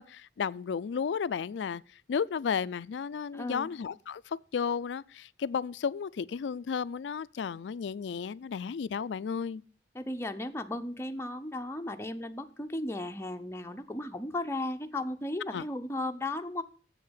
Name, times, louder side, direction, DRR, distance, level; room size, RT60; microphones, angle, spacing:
voice 1, 0.0-1.8 2.1-9.6 15.5-15.6, left 6 dB, 85° left, 0.4 m, -33 dB
voice 2, 3.3-3.7 9.9-16.6, left 1 dB, 15° left, 0.6 m, -35 dB
7.8 x 6.6 x 7.9 m
head